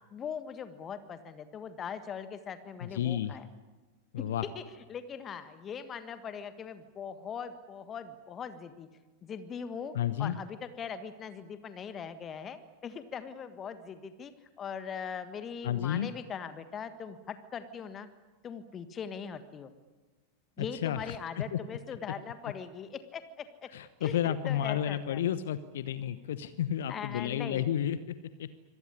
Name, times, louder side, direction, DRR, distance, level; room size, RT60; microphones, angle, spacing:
voice 1, 0.1-3.5 4.2-4.3 4.5-4.6 4.9-8.9 9.2-9.9 10.2-14.3 14.6-18.1 18.4-19.7 20.6-23.7 24.0-25.2 26.9-27.6, left 7 dB, 25° left, 11 dB, 1.5 m, -40 dB
voice 2, 2.8-3.4 4.1-4.4 9.9-10.4 15.6-16.1 20.6-21.6 23.7-28.5, left 10 dB, 60° left, 14 dB, 0.9 m, -32 dB
25.5 x 18.0 x 9.9 m, 1.3 s
figure-of-eight pair, 90°, 0 cm